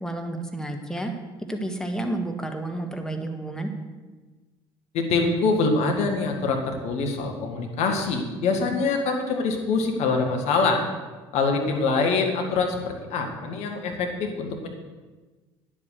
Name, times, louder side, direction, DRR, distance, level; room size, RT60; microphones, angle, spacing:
voice 1, 0.0-1.1 1.5-3.7, right 1 dB, 5° left, 4 dB, 1.6 m, -30 dB
voice 2, 4.9-10.8 11.3-14.7, left 4 dB, 60° left, 3 dB, 1.9 m, -24 dB
9.6 x 7.8 x 6.6 m, 1.3 s
hypercardioid pair, 60°, 13 cm